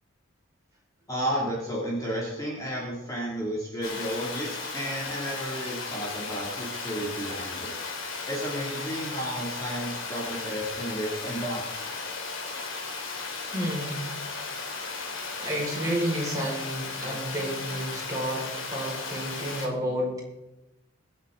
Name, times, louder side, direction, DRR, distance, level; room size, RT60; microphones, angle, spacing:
voice 1, 1.1-7.8 8.3-11.7, equal, 15° left, -5 dB, 2.8 m, -32 dB
Water, 3.8-19.7, left 4 dB, 70° left, 2.7 m, -35 dB
voice 2, 13.5-14.1 14.8-20.2, equal, 15° right, -4 dB, 5.3 m, -31 dB
23.5 x 8.6 x 4.0 m, 0.96 s
head